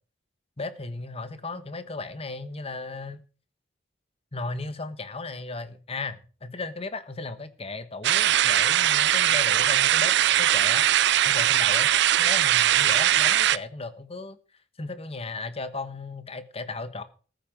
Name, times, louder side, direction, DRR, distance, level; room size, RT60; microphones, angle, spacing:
voice 1, 0.6-3.2 4.3-10.8 11.2-11.9 12.2-14.4 14.8-17.0, left 3 dB, 30° left, 1.3 m, -36 dB
sound 1, 8.0-13.6, right 11 dB, 65° right, 0.5 m, -21 dB
14.0 x 9.2 x 4.6 m
head